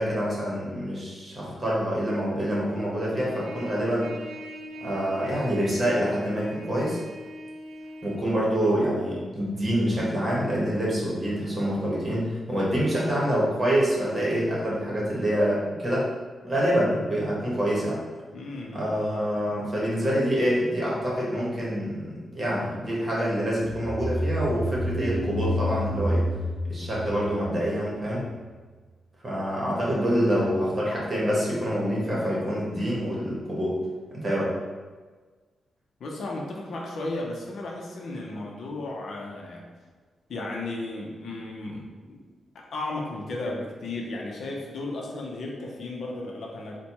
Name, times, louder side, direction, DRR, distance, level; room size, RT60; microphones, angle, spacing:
voice 1, 0.0-4.1 4.8-7.0 8.0-16.1 16.4-18.0 18.7-26.3 26.7-28.3 29.2-33.8 34.1-34.5, equal, 25° right, -5 dB, 1.0 m, -26 dB
Trumpet, 3.2-8.2, equal, 65° right, 0.7 m, -41 dB
voice 2, 18.3-18.8 36.0-39.6 40.3-42.2 42.5-46.8, left 2 dB, 60° left, -1 dB, 0.7 m, -34 dB
sound 1, 23.6-28.1, equal, ahead, 0.8 m, -29 dB
4.2 x 2.2 x 4.4 m, 1.4 s
wide cardioid pair, 180°, 0 cm